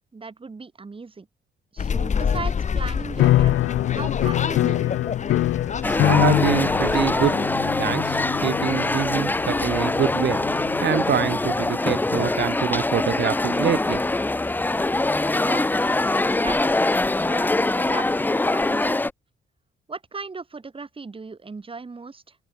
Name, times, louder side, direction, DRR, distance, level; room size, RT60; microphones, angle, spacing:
voice 1, 0.1-1.3 1.7-4.9 15.4-15.7 16.0-16.6 17.2-19.0 19.9-22.4, right 4 dB, 25° right, 3.6 m, -37 dB
sound 1, 1.8-7.3, left 6 dB, 35° left, 1.0 m, -28 dB
sound 2, 3.2-11.5, left 15 dB, 85° left, 1.8 m, -24 dB
sound 3, 5.8-19.1, left 2 dB, 10° left, 0.5 m, -23 dB
voice 2, 6.0-14.1, right 9 dB, 60° right, 3.7 m, -26 dB
cardioid pair, 90°, 20 cm